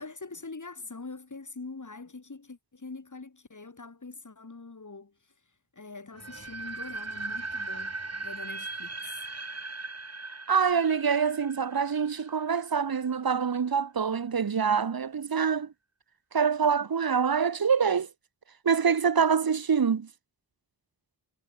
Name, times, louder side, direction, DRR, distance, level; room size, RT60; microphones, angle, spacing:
voice 1, 0.0-5.1 5.7-9.2, left 3 dB, 50° left, 5.8 m, -43 dB
sound 1, 6.2-13.0, right 3 dB, 40° right, 5.5 m, -38 dB
voice 2, 10.5-15.7 16.3-18.1 18.6-20.1, right 6 dB, 65° right, 1.2 m, -25 dB
wide cardioid pair, 90°, 39 cm